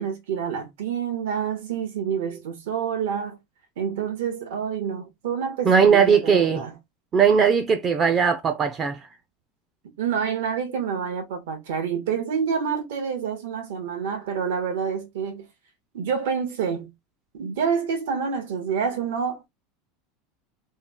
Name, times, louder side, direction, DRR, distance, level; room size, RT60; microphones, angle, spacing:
voice 1, 0.0-3.4 3.8-6.7 10.0-15.5 15.9-16.9 17.3-19.5, right 7 dB, 90° right, 1.5 m, -28 dB
voice 2, 5.7-6.7 7.1-9.0, right 6 dB, 25° right, 0.4 m, -19 dB
3.5 x 2.3 x 3.6 m
supercardioid pair, 160°, 0 cm